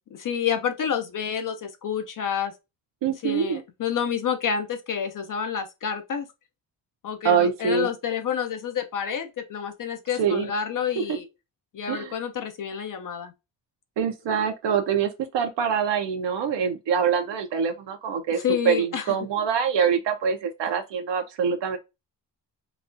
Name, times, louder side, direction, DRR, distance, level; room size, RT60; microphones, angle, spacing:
voice 1, 0.1-2.5 3.2-6.3 7.0-11.3 11.7-13.3 18.4-19.0, left 8 dB, 45° left, 0.5 m, -29 dB
voice 2, 3.0-3.6 7.2-7.9 10.2-10.5 11.9-12.1 14.0-18.4 18.6-21.8, right 7 dB, 70° right, 0.7 m, -24 dB
4.0 x 2.3 x 2.6 m
wide cardioid pair, 155°, 44 cm